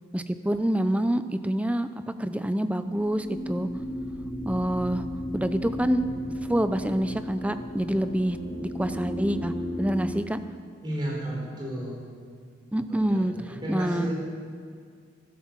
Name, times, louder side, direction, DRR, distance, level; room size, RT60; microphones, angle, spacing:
voice 1, 0.1-1.9 2.2-3.7 4.4-5.0 5.3-6.1 6.5-8.4 8.7-9.5 9.8-10.4 12.7-14.1, right 1 dB, 5° right, 10 dB, 0.5 m, -26 dB
sound 1, 2.8-10.1, left 1 dB, 20° left, 4.2 m, -34 dB
voice 2, 10.8-12.0 12.9-13.2 13.5-14.1, right 1 dB, 25° right, -3 dB, 4.3 m, -32 dB
13.5 x 12.0 x 7.4 m, 2.1 s
head